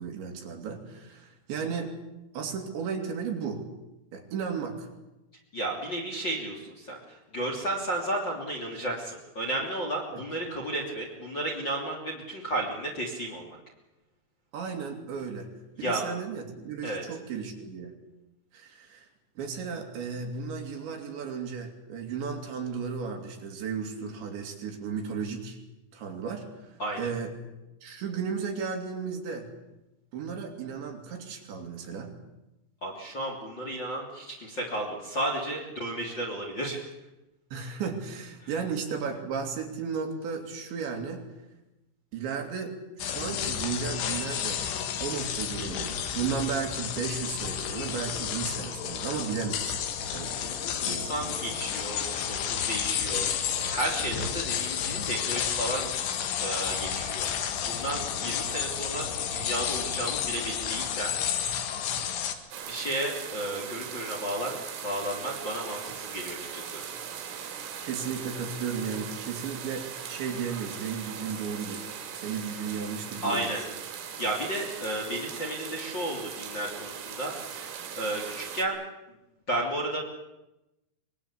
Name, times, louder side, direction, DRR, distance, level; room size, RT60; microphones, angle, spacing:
voice 1, 0.0-2.0 2.3-3.6 4.1-4.9 10.1-10.2 14.5-15.5 15.8-18.0 18.5-19.1 19.4-25.6 25.9-27.3 27.8-29.5 30.1-32.2 37.5-41.3 42.1-44.7 45.0-49.8 50.1-50.4 50.7-51.4 67.8-71.9 72.1-73.6, right 6 dB, 65° right, 2 dB, 4.9 m, -34 dB
voice 2, 5.5-13.6 15.8-16.0 16.8-17.0 26.8-27.1 32.8-36.9 50.3-53.3 53.7-55.9 56.4-61.1 62.7-64.5 64.8-66.8 73.2-73.6 74.0-78.8 79.5-80.0, right 1 dB, 25° left, -1 dB, 2.8 m, -33 dB
sound 1, 43.0-62.3, left 8 dB, 70° left, 4.1 m, -31 dB
sound 2, 62.5-78.6, right 8 dB, 80° right, 5.2 m, -39 dB
24.5 x 21.5 x 8.5 m, 0.96 s
omnidirectional pair, 5.9 m